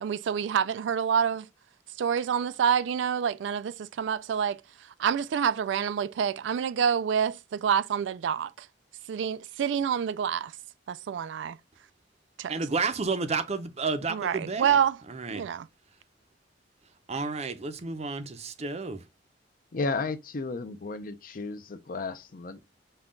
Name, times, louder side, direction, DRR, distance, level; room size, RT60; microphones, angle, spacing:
voice 1, 0.0-1.4 2.0-4.6 5.0-7.3 7.6-8.7 9.1-10.5 10.9-11.6 12.4-12.5 14.1-15.0 15.3-15.7, right 8 dB, 80° right, 0.3 m, -27 dB
voice 2, 12.5-14.8 15.1-15.5 17.1-19.0, right 4 dB, 35° right, 0.6 m, -31 dB
voice 3, 19.7-22.6, left 3 dB, 50° left, 0.6 m, -33 dB
5.4 x 2.3 x 3.7 m
head